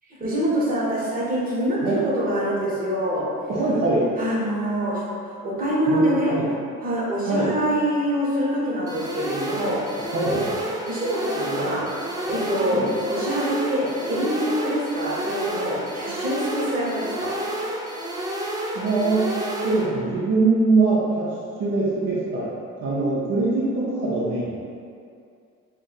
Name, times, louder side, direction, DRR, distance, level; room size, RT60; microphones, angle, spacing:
voice 1, 0.2-3.3 4.2-6.4 6.8-10.4 10.8-11.9 12.3-17.4, right 1 dB, 30° right, -7 dB, 1.0 m, -25 dB
voice 2, 3.5-4.1 5.9-6.5 7.3-7.5 10.1-10.5 12.7-12.9 18.7-19.3 19.6-22.5 22.8-24.7, right 3 dB, 55° right, -8 dB, 0.6 m, -23 dB
sound 1, 8.9-19.9, right 1 dB, 15° right, 0.3 m, -30 dB
2.5 x 2.2 x 3.9 m, 2.4 s
cardioid pair, 90°, 30 cm